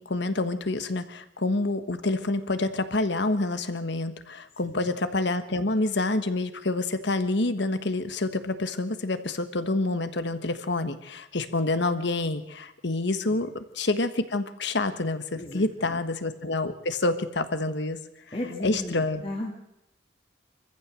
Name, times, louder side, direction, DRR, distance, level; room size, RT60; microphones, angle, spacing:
voice 1, 0.0-18.0 18.6-19.2, left 2 dB, 65° left, 10 dB, 1.5 m, -27 dB
voice 2, 15.3-16.0 18.3-19.5, left 1 dB, 30° left, -1 dB, 2.3 m, -35 dB
24.0 x 14.5 x 7.6 m, 0.85 s
head